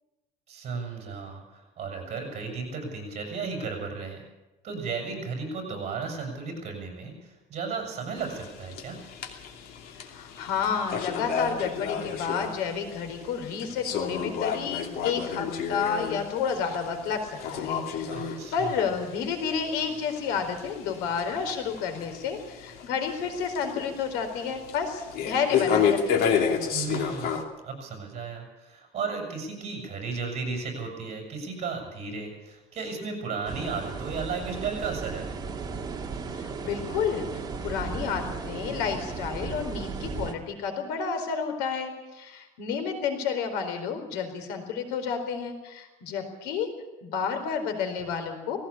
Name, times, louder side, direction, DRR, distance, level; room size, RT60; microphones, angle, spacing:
voice 1, 0.5-4.2 4.6-9.0 18.1-18.8 26.7-27.3 27.6-35.3, right 5 dB, 40° right, 3 dB, 6.8 m, -34 dB
sound 1, 8.2-27.4, left 7 dB, 65° left, 2.8 m, -32 dB
voice 2, 9.9-26.2 36.3-46.7 47.0-48.6, left 6 dB, 85° left, 6 dB, 4.4 m, -31 dB
sound 2, 33.5-40.3, right 4 dB, 25° right, 1.9 m, -35 dB
18.5 x 16.5 x 8.6 m, 1.0 s
cardioid pair, 145°, 17 cm